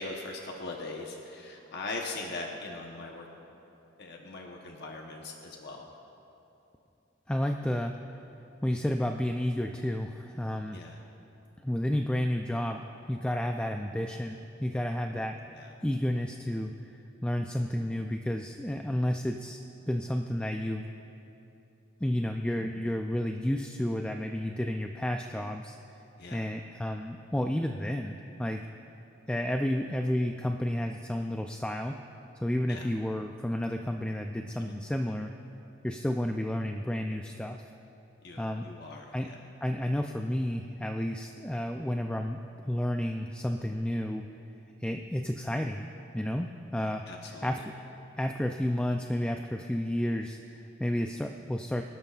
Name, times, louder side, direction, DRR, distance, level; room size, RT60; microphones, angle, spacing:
voice 1, 0.0-3.3 4.0-5.9 10.7-11.0 15.5-15.7 22.6-22.9 26.2-26.5 32.7-32.9 34.4-34.7 38.2-39.4 47.1-47.7, left 2 dB, 60° left, 0 dB, 1.0 m, -41 dB
voice 2, 7.3-8.0 8.6-10.8 11.6-12.8 13.1-15.4 15.8-20.9 22.0-25.8 26.3-28.6 29.3-32.0 32.4-35.3 35.8-37.7 38.4-38.7 39.1-39.3 39.6-44.3 44.8-45.9 46.1-47.0 47.4-47.7 48.2-51.8, left 1 dB, 5° left, 4 dB, 0.3 m, -31 dB
24.5 x 12.5 x 2.4 m, 2.9 s
head